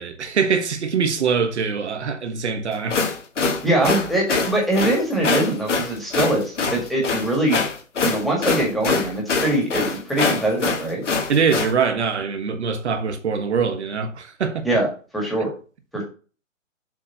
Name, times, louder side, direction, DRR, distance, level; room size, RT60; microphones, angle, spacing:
voice 1, 0.0-3.0 11.3-14.7, right 6 dB, 55° right, 1.4 m, -23 dB
sound 1, 2.7-11.7, left 4 dB, 60° left, 1.7 m, -24 dB
voice 2, 3.6-7.6 8.0-11.0 14.6-14.9 15.1-15.5 15.9-16.0, right 1 dB, ahead, 1.7 m, -22 dB
7.5 x 3.6 x 5.4 m
figure-of-eight pair, 140°, 40 cm